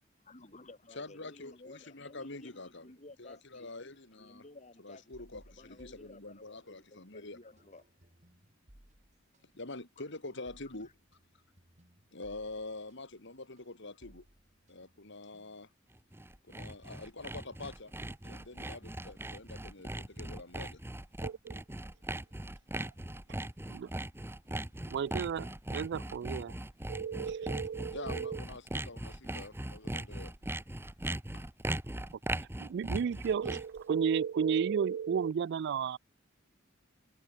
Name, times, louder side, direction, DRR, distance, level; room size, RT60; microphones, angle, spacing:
voice 1, 0.2-5.0 5.3-7.8 10.0-10.1 10.8-10.9, left 2 dB, 35° left, 3.2 m, -55 dB
voice 2, 0.9-2.9 3.2-4.4 4.8-7.4 9.5-10.9 12.1-14.2 14.7-15.7 16.5-17.9 18.2-20.8 27.9-30.3 31.3-31.4, left 2 dB, 65° left, 3.4 m, -46 dB
sound 1, 5.1-6.8 7.1-15.8, right 1 dB, 35° right, 2.8 m, -63 dB
Sawing, 16.0-33.8, right 1 dB, 10° right, 1.3 m, -39 dB
voice 3, 21.2-21.6 23.7-23.9 24.9-26.5 26.9-28.4 32.6-36.0, right 7 dB, 60° right, 0.3 m, -33 dB
head